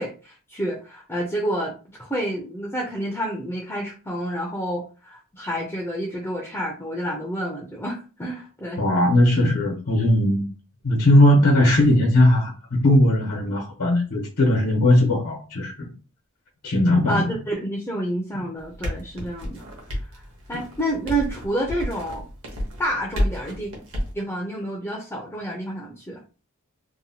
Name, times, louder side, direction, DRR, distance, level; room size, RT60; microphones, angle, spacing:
voice 1, 0.0-1.7 2.0-8.8 17.1-20.2 20.5-22.3 22.8-23.7 24.1-26.2, right 1 dB, 10° left, 0.4 m, -29 dB
voice 2, 8.8-10.4 10.8-15.9 16.6-17.3, left 1 dB, 90° left, 0.9 m, -18 dB
sound 1, 18.6-24.1, equal, 65° right, 0.9 m, -30 dB
2.8 x 2.1 x 2.7 m
head